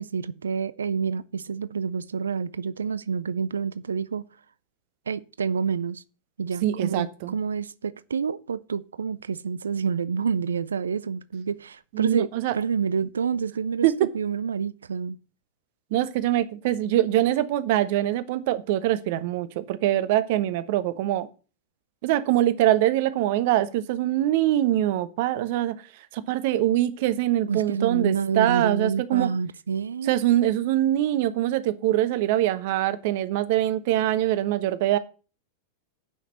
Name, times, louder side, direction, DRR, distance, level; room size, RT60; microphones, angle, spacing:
voice 1, 0.0-4.3 5.1-6.0 6.4-12.3 12.5-15.2 27.5-30.1, right 6 dB, 70° right, 0.4 m, -28 dB
voice 2, 6.6-7.3 11.9-12.6 13.8-14.1 15.9-21.3 22.0-29.3 30.0-35.0, right 13 dB, 50° right, 0.8 m, -23 dB
8.7 x 6.0 x 6.6 m
figure-of-eight pair, 90°, 0 cm